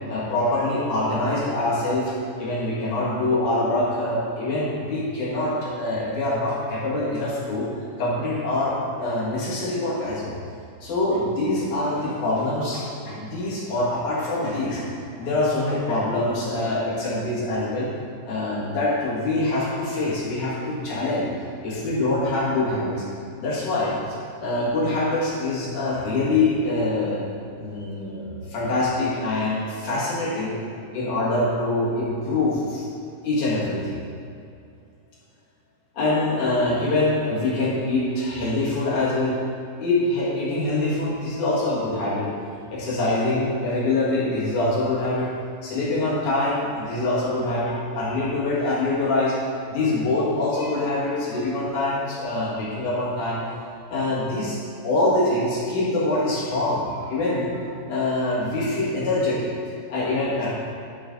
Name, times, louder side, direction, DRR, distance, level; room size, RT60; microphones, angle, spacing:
voice 1, 0.1-2.1 2.4-7.7 8.0-10.4 10.8-14.8 15.2-17.9 18.2-21.3 21.6-23.0 23.4-24.0 24.4-27.2 27.6-30.6 30.9-32.8 33.2-34.0 35.9-39.4 39.8-42.3 42.7-45.3 45.6-53.5 53.9-54.6 54.8-59.5 59.9-60.5, left 2 dB, 55° left, -8 dB, 2.8 m, -24 dB
12.0 x 5.5 x 3.9 m, 2.5 s
omnidirectional pair, 5.0 m